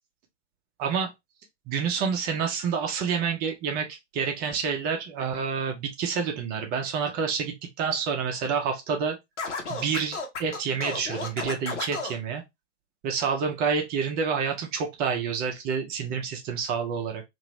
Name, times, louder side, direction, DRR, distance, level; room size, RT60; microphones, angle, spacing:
voice 1, 0.8-1.1 1.7-9.2 9.7-12.4 13.0-17.2, right 6 dB, 25° right, 0.7 m, -28 dB
Scratching (performance technique), 9.4-12.2, left 4 dB, 70° left, 1.1 m, -33 dB
2.8 x 2.6 x 3.0 m
figure-of-eight pair, 110°, 36 cm